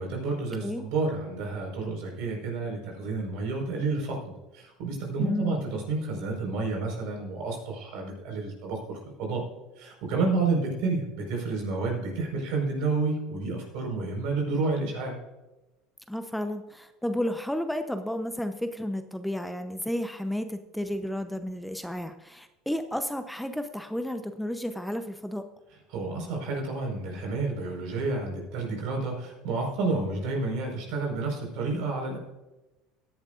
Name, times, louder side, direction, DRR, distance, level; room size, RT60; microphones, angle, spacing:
voice 1, 0.0-4.2 4.5-9.4 9.8-15.2 25.9-32.2, right 3 dB, 65° right, 0 dB, 4.8 m, -30 dB
voice 2, 5.2-5.6 16.1-25.4, left 1 dB, 5° left, 8 dB, 0.8 m, -32 dB
17.0 x 11.0 x 2.6 m, 1.0 s
hypercardioid pair, 70°, 0 cm